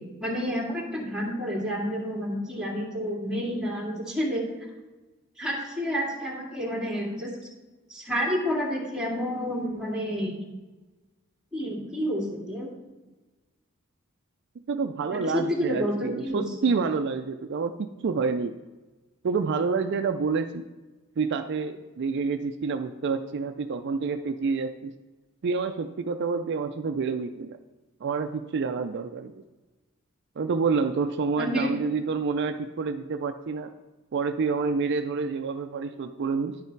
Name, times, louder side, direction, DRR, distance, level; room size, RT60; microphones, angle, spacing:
voice 1, 0.0-4.4 5.4-7.3 7.9-10.4 11.5-12.7 15.1-16.4 31.4-31.7, equal, 5° right, -3 dB, 2.2 m, -29 dB
voice 2, 14.7-18.6 19.2-20.6 21.2-24.9 25.4-27.6 28.0-29.4 30.4-33.7 34.1-36.6, right 5 dB, 55° right, 8 dB, 0.4 m, -28 dB
10.5 x 5.7 x 4.5 m, 1.2 s
head